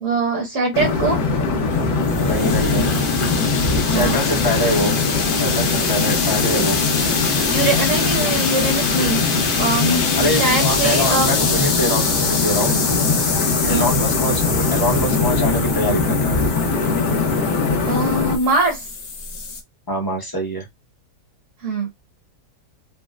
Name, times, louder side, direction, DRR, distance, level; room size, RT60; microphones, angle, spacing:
voice 1, 0.0-1.2 3.9-4.2 7.5-9.2 9.6-11.3 13.6-13.9 17.9-18.8 21.6-21.9, right 3 dB, 50° right, 1.2 m, -22 dB
sound 1, 0.7-18.4, left 4 dB, 65° left, 1.3 m, -21 dB
sound 2, 1.4-19.6, left 5 dB, 80° left, 0.4 m, -25 dB
voice 2, 2.2-2.9 3.9-5.0 5.3-6.8 10.2-12.8 13.7-16.4 19.9-20.6, equal, 20° left, 0.6 m, -24 dB
4.0 x 2.1 x 2.3 m
omnidirectional pair, 1.9 m